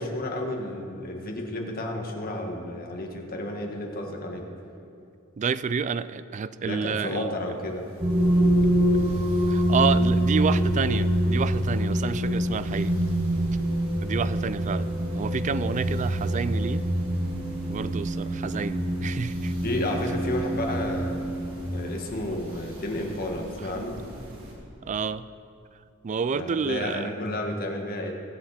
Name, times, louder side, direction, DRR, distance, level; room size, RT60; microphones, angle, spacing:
voice 1, 0.0-4.5 6.6-7.9 19.6-21.2 21.7-24.0 26.3-28.1, left 1 dB, 45° left, 1 dB, 1.7 m, -31 dB
voice 2, 5.4-7.3 9.5-12.9 14.0-14.9 15.1-16.8 17.7-19.5 24.8-25.2 26.0-27.1, right 5 dB, 35° right, 15 dB, 0.3 m, -29 dB
sound 1, 7.5-24.5, equal, 75° right, 3.4 m, -45 dB
sound 2, 8.0-21.6, right 1 dB, 15° right, 1.1 m, -25 dB
22.5 x 7.5 x 4.3 m, 2.7 s
head